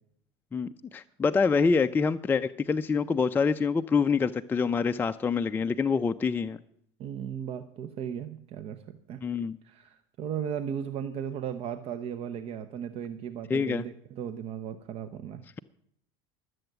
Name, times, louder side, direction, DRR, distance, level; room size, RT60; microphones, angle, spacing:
voice 1, 0.5-6.6 9.2-9.6 13.5-13.8, left 5 dB, 15° left, 9 dB, 0.4 m, -26 dB
voice 2, 7.0-9.2 9.6-15.4, right 8 dB, 50° right, 10 dB, 0.8 m, -36 dB
12.0 x 7.8 x 7.9 m, 0.69 s
supercardioid pair, 110°, 13 cm